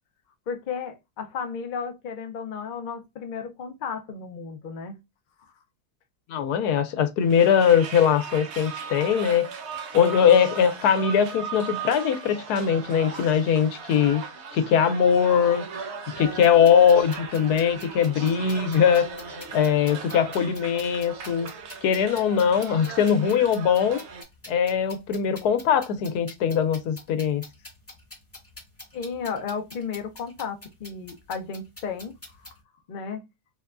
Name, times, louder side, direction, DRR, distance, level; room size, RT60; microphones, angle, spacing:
voice 1, 0.5-4.9 5.4-5.5 28.9-32.5 32.9-33.2, left 6 dB, 60° left, 0.5 m, -34 dB
voice 2, 6.3-9.5 9.9-14.2 14.5-15.6 16.2-19.1 19.5-21.5 21.8-24.0 24.5-27.4, left 8 dB, 85° left, 1.2 m, -21 dB
sound 1, 7.2-24.2, right 5 dB, 55° right, 0.8 m, -38 dB
sound 2, 16.3-32.6, left 1 dB, 10° left, 0.9 m, -47 dB
4.0 x 2.2 x 2.3 m
omnidirectional pair, 1.6 m